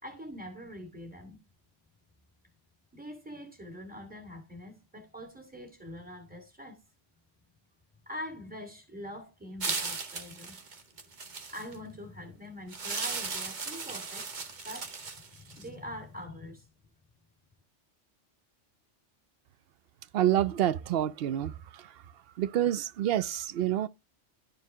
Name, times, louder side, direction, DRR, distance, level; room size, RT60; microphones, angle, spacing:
voice 1, 0.0-1.4 2.9-6.8 8.1-10.6 11.5-14.3 14.6-16.7, equal, 5° right, 2.5 m, -44 dB
sound 1, 9.6-11.8 12.7-15.7, right 4 dB, 40° right, 1.1 m, -36 dB
voice 2, 20.1-21.9 22.4-23.9, right 11 dB, 60° right, 0.7 m, -28 dB
12.5 x 4.6 x 3.6 m
omnidirectional pair, 1.2 m